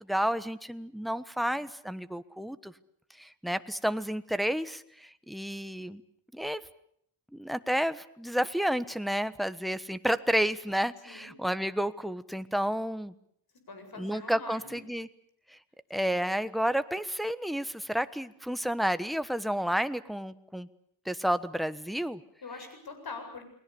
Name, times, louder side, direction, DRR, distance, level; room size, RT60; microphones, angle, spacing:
voice 1, 0.1-2.7 3.2-6.0 6.3-6.6 7.3-13.1 14.0-15.1 15.9-20.7 21.0-22.2, equal, ahead, 12 dB, 1.2 m, -31 dB
voice 2, 13.7-14.8 16.0-16.1 22.4-23.4, left 4 dB, 50° left, 7 dB, 7.9 m, -43 dB
30.0 x 20.0 x 7.0 m, 0.68 s
cardioid pair, 110°, 45 cm